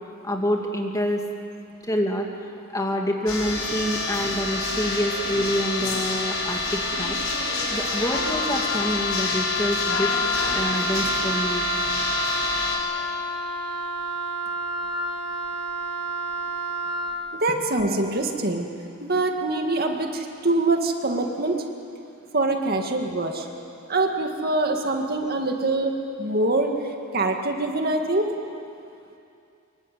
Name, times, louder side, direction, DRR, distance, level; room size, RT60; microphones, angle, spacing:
voice 1, 0.2-1.2 1.8-2.3 2.7-7.2 7.7-10.1 10.5-11.7, equal, 15° left, 1 dB, 2.5 m, -27 dB
sound 1, 3.3-12.8, left 3 dB, 75° left, 5.7 m, -27 dB
Wind instrument woodwind instrument, 8.1-17.2, equal, 55° left, 2.5 m, -29 dB
voice 2, 17.4-18.7 19.0-21.6 22.3-23.5 23.9-25.9 26.2-26.7 27.1-28.3, right 2 dB, 50° right, 3 dB, 2.2 m, -24 dB
25.5 x 24.0 x 9.4 m, 2.6 s
head